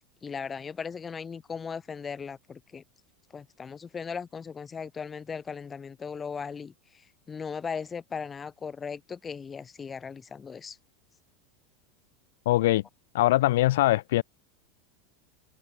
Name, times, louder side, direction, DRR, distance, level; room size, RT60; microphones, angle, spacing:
voice 1, 0.2-2.8 3.3-6.7 7.3-10.8, left 6 dB, 15° left, 1.4 m, -37 dB
voice 2, 12.5-12.8 13.1-14.2, left 16 dB, 80° left, 0.3 m, -22 dB
supercardioid pair, 155°, 0 cm